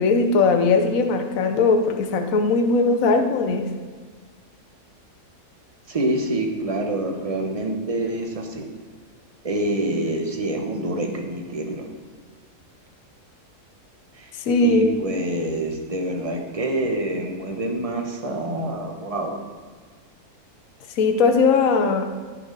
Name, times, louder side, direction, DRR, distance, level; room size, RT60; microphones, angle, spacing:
voice 1, 0.0-3.7 14.4-14.9 21.0-22.1, left 4 dB, 65° left, 4 dB, 1.2 m, -19 dB
voice 2, 5.9-8.7 9.4-11.9 14.2-14.3 14.6-19.4, right 1 dB, 25° right, 3 dB, 1.0 m, -26 dB
14.5 x 6.1 x 4.0 m, 1.5 s
omnidirectional pair, 1.6 m